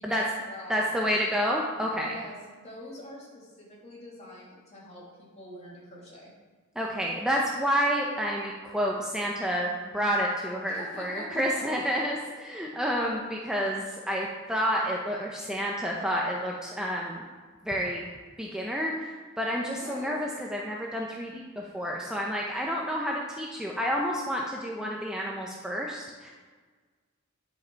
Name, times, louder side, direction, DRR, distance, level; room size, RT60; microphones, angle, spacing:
voice 1, 0.0-1.2 1.9-6.3 10.7-11.7 12.7-12.9 19.7-20.2, equal, 30° left, -5 dB, 2.3 m, -44 dB
voice 2, 0.7-2.1 6.8-17.2 17.6-18.1 18.4-26.3, equal, 5° right, -2 dB, 0.6 m, -29 dB
9.9 x 5.2 x 4.5 m, 1.5 s
head